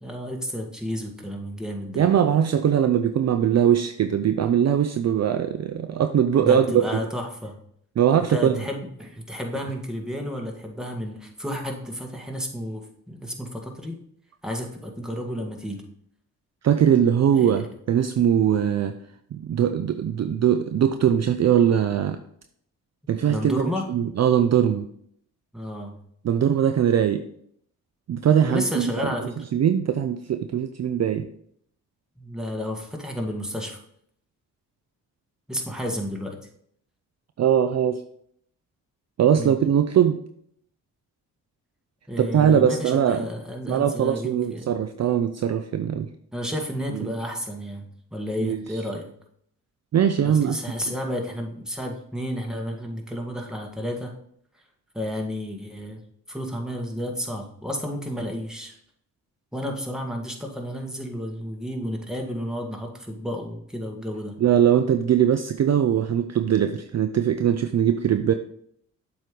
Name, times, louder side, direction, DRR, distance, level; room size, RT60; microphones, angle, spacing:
voice 1, 0.0-2.0 6.4-7.6 8.3-14.0 14.4-15.8 17.3-17.7 23.2-23.9 25.5-26.0 28.4-29.5 32.2-33.8 35.5-36.4 39.4-39.6 42.1-44.7 46.3-49.1 50.2-54.1 54.9-56.0 56.3-58.8 59.5-64.4, equal, ahead, 1 dB, 1.8 m, -31 dB
voice 2, 2.0-6.7 6.9-7.0 8.0-8.6 16.6-19.0 19.3-22.2 23.1-24.9 26.2-27.2 28.1-29.1 29.5-31.3 37.4-38.0 39.2-40.2 42.2-43.3 43.7-46.1 48.4-48.6 49.9-50.6 50.9-51.0 64.4-68.3, right 9 dB, 45° right, 8 dB, 0.5 m, -21 dB
7.5 x 3.2 x 5.2 m, 0.67 s
supercardioid pair, 45°, 38 cm